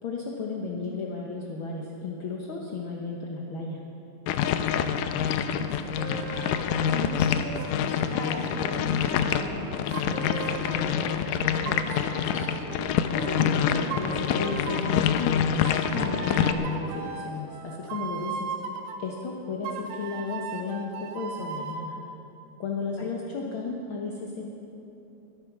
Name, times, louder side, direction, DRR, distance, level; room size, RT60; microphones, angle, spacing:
voice 1, 0.0-3.8 13.1-18.5 19.0-21.9 22.6-24.5, left 4 dB, 65° left, -2 dB, 1.3 m, -33 dB
sound 1, 4.3-16.5, left 8 dB, 85° left, 2.2 m, -26 dB
voice 2, 5.1-12.5 22.9-23.1, left 1 dB, 25° left, -2 dB, 1.9 m, -39 dB
sound 2, 6.0-7.0 7.6-11.0 11.6-13.5 13.9-15.0 15.6-19.0 19.6-21.8, right 6 dB, 90° right, 2.6 m, -38 dB
22.5 x 8.8 x 6.0 m, 2.9 s
omnidirectional pair, 3.8 m